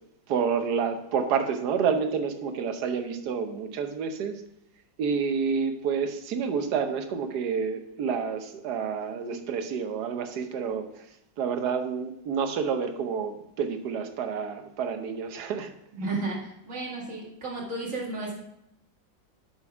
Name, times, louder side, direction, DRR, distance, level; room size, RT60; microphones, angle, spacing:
voice 1, 0.3-4.4 5.0-11.0 11.4-15.7, right 6 dB, 65° right, 6 dB, 1.3 m, -29 dB
voice 2, 15.9-18.3, right 2 dB, 45° right, -4 dB, 2.7 m, -33 dB
8.7 x 5.7 x 4.8 m, 0.81 s
omnidirectional pair, 2.0 m